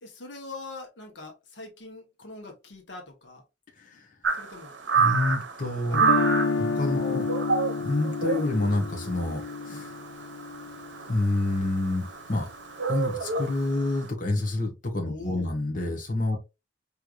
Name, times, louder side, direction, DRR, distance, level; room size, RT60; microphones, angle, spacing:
voice 1, 0.0-3.4 4.4-4.8 5.6-6.2 7.0-7.1 15.0-15.5, left 2 dB, 80° left, 1.2 m, -43 dB
sound 1, 4.2-14.1, right 5 dB, 85° right, 0.7 m, -29 dB
voice 2, 5.0-6.0 6.6-7.3 7.8-10.0 11.1-12.5 12.9-16.4, left 2 dB, 50° left, 1.3 m, -28 dB
Guitar, 5.9-11.9, left 4 dB, 65° left, 0.5 m, -30 dB
4.7 x 3.4 x 2.5 m
head